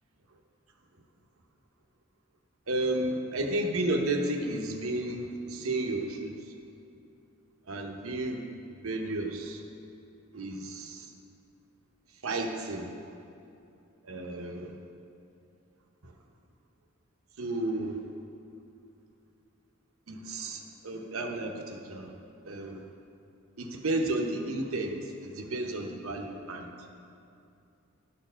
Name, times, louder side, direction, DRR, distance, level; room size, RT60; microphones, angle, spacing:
voice 1, 2.7-6.5 7.7-9.6 10.3-11.1 12.1-12.9 14.0-14.7 16.0-16.1 17.4-18.0 20.1-22.2 22.4-22.9 23.6-26.7, right 2 dB, 90° right, 3 dB, 0.8 m, -32 dB
11.0 x 4.5 x 6.2 m, 2.6 s
head